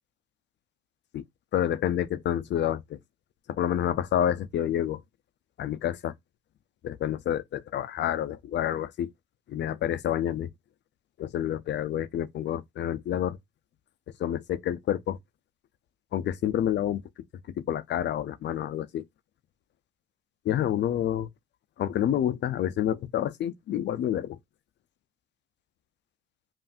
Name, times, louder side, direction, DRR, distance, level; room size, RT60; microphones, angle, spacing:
voice 1, 1.5-3.0 3.5-5.0 5.6-6.1 6.8-9.1 9.5-10.5 11.2-13.4 14.2-15.2 16.1-17.0 17.6-19.0 20.5-21.3 21.8-24.4, left 10 dB, 60° left, 0.5 m, -28 dB
5.5 x 2.5 x 2.5 m
cardioid pair, 90°, 20 cm